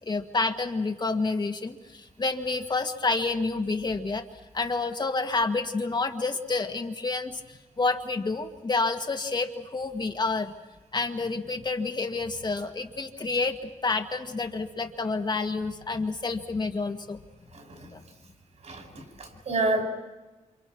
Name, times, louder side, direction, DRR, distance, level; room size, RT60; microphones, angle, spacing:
voice 1, 0.0-4.3 4.5-10.5 10.9-17.2 17.9-18.0, left 3 dB, 35° left, 5 dB, 1.8 m, -29 dB
voice 2, 17.5-17.9 18.6-18.8 19.2-19.8, right 2 dB, 60° right, 5 dB, 6.1 m, -28 dB
29.0 x 27.5 x 6.2 m, 1.1 s
wide cardioid pair, 120°, 13 cm